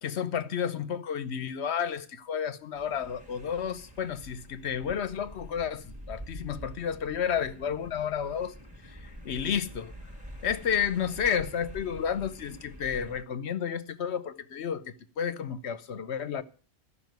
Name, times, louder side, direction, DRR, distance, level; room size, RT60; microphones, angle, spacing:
voice 1, 0.0-8.5 8.8-9.9 10.4-16.4, left 8 dB, 55° left, 1.0 m, -31 dB
sound 1, 2.7-13.2, equal, 5° right, 1.6 m, -46 dB
14.0 x 5.8 x 9.2 m
omnidirectional pair, 1.5 m